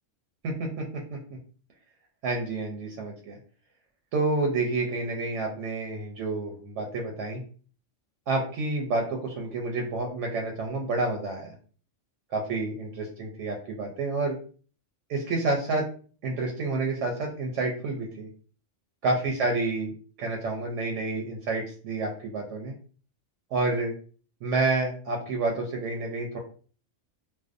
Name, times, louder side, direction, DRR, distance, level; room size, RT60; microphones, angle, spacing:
voice 1, 0.4-0.8 1.1-1.2 2.2-3.4 4.1-7.4 8.3-11.5 12.3-14.4 15.1-15.8 16.2-18.3 19.0-19.9 20.2-22.7 23.5-23.9 24.4-26.4, right 3 dB, 85° right, 2 dB, 0.9 m, -29 dB
2.5 x 2.2 x 2.4 m, 0.41 s
omnidirectional pair, 1.2 m